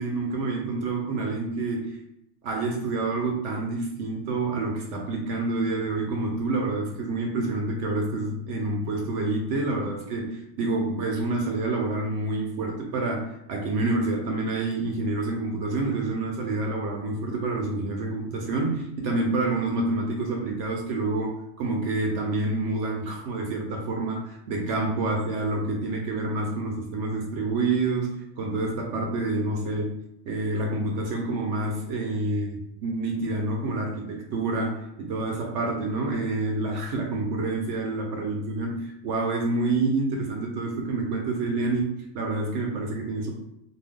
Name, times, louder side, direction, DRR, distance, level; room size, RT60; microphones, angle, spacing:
voice 1, 0.0-2.0 2.4-30.0 30.3-43.3, right 2 dB, 65° right, 0 dB, 0.8 m, -28 dB
2.6 x 2.2 x 3.4 m, 0.81 s
omnidirectional pair, 1.6 m